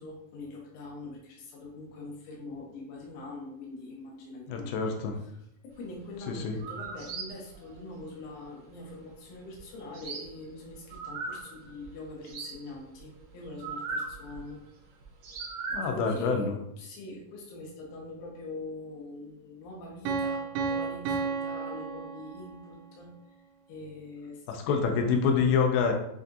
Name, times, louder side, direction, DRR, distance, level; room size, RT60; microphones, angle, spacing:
voice 1, 0.0-4.7 5.6-14.6 15.7-16.5 16.8-23.1 23.7-24.4 24.7-24.8, left 2 dB, 65° left, -2 dB, 2.3 m, -43 dB
voice 2, 4.5-5.2 6.3-6.6 15.7-16.6 24.5-25.9, left 5 dB, 90° left, 3 dB, 2.5 m, -26 dB
sound 1, 5.9-6.0 6.4-11.9 12.1-14.6 15.0-15.9, right 4 dB, 70° right, 2.1 m, -38 dB
Piano, 20.1-22.8, right 5 dB, 90° right, 2.5 m, -32 dB
7.6 x 2.5 x 2.7 m, 0.76 s
omnidirectional pair, 4.2 m